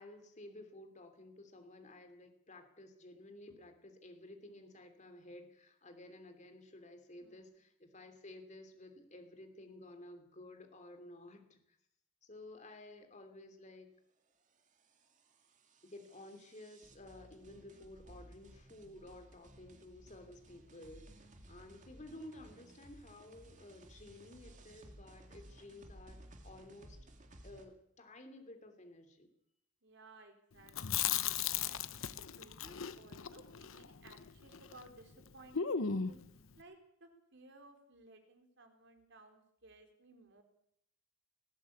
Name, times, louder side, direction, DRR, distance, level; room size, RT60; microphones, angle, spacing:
voice 1, 0.0-11.8 12.2-13.9 15.8-27.0 27.4-29.3, left 1 dB, 35° left, 6 dB, 3.0 m, -54 dB
voice 2, 7.2-7.6 29.8-31.2 31.6-31.9 32.2-36.2 36.6-40.4, right 2 dB, 60° right, 4 dB, 4.2 m, -59 dB
sound 1, 14.4-27.7, right 1 dB, 40° right, 2.4 m, -58 dB
Chewing mastication, 30.7-34.9 35.1-35.2 35.5-36.3, left 7 dB, 75° left, 0.9 m, -36 dB
20.0 x 16.0 x 8.5 m, 0.73 s
head